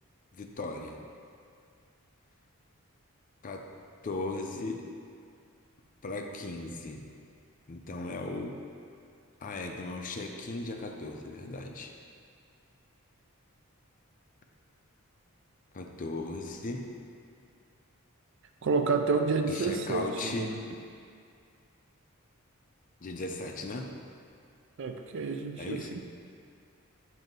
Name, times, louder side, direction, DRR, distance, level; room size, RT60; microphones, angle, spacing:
voice 1, 0.3-1.0 3.4-3.7 4.0-4.9 6.0-7.1 7.7-8.6 9.4-11.9 15.7-16.9 19.5-20.6 23.0-23.9 25.6-26.0, left 2 dB, 35° left, 3 dB, 0.4 m, -37 dB
voice 2, 18.6-20.6 24.8-26.0, right 4 dB, 55° right, 5 dB, 0.4 m, -29 dB
7.7 x 2.7 x 5.3 m, 2.3 s
head